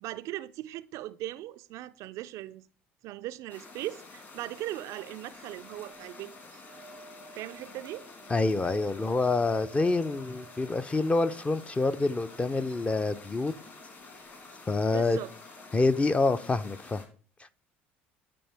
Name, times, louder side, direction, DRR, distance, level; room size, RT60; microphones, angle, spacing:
voice 1, 0.0-2.6 3.0-6.6 7.3-8.1 14.9-15.3, right 15 dB, 55° right, 0.4 m, -39 dB
sound 1, 3.5-17.1, left 3 dB, 40° left, 3.2 m, -49 dB
sound 2, 5.5-11.7 14.0-14.1 14.2-14.3, right 3 dB, 90° left, 2.2 m, -53 dB
voice 2, 8.3-13.5 14.7-15.2 15.7-17.0, left 3 dB, 20° left, 0.6 m, -27 dB
13.0 x 4.3 x 3.4 m
hypercardioid pair, 65°, 6 cm